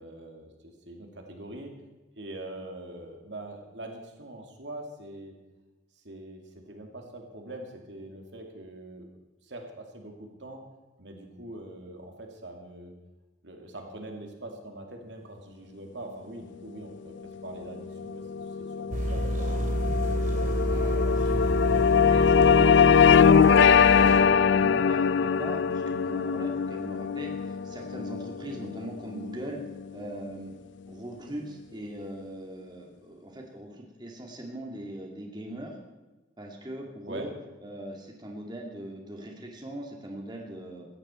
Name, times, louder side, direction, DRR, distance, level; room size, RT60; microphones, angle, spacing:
voice 1, 0.0-1.7 2.2-5.3 6.0-9.1 9.4-10.6 11.0-12.9 13.4-20.3 37.0-37.3, right 1 dB, 80° right, 2 dB, 2.5 m, -43 dB
sound 1, 17.4-30.0, left 6 dB, 90° left, 0.4 m, -22 dB
sound 2, 18.9-24.2, right 1 dB, 45° right, 2.6 m, -29 dB
voice 2, 20.5-23.2 23.6-29.6 29.9-30.5 30.8-35.8 36.4-37.3 37.6-40.9, right 1 dB, 25° right, 0 dB, 2.4 m, -40 dB
17.5 x 14.5 x 4.5 m, 1.1 s
head